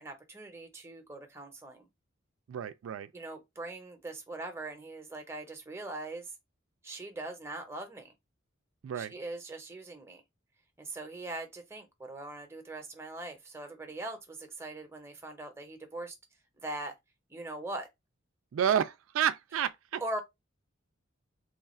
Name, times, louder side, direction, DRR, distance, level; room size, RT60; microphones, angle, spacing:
voice 1, 0.0-1.9 3.1-6.3 6.8-8.1 9.0-10.2 10.8-16.1 16.6-16.9 17.3-17.9 20.0-20.2, right 2 dB, 15° right, 0.7 m, -41 dB
voice 2, 2.5-3.1 8.8-9.1 18.5-20.0, right 9 dB, 75° right, 0.3 m, -30 dB
3.1 x 2.3 x 4.1 m
head